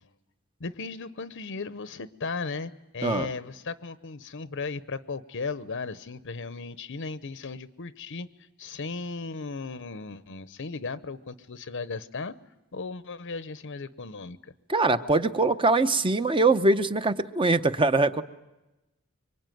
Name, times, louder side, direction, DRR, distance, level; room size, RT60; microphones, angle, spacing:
voice 1, 0.6-8.3 8.6-12.3 12.7-14.5, left 4 dB, 60° left, 14 dB, 0.8 m, -36 dB
voice 2, 14.7-18.2, right 2 dB, 25° right, 10 dB, 0.9 m, -23 dB
25.0 x 24.0 x 9.3 m, 1.0 s
head